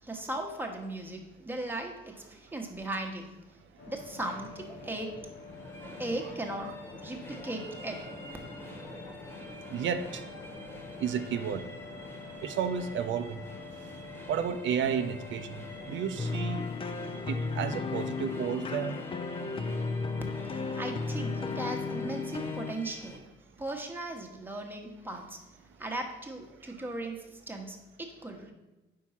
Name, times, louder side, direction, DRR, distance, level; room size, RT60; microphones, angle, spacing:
voice 1, 0.0-3.3 3.9-5.1 6.0-6.7 7.0-8.0 20.7-23.2 23.6-25.5 25.8-28.5, right 2 dB, 10° right, 2 dB, 1.1 m, -37 dB
sound 1, 3.8-16.1, left 4 dB, 70° left, 1.2 m, -47 dB
sound 2, 5.4-23.2, equal, 10° left, 1.3 m, -47 dB
voice 2, 9.7-10.1 11.0-11.6 12.4-13.4 14.3-15.4 15.9-16.6 17.3-19.0, right 8 dB, 70° right, 9 dB, 0.5 m, -31 dB
sound 3, 16.2-22.8, left 4 dB, 30° left, 0.4 m, -34 dB
4.7 x 4.5 x 5.6 m, 1.1 s
cardioid pair, 90°, 20 cm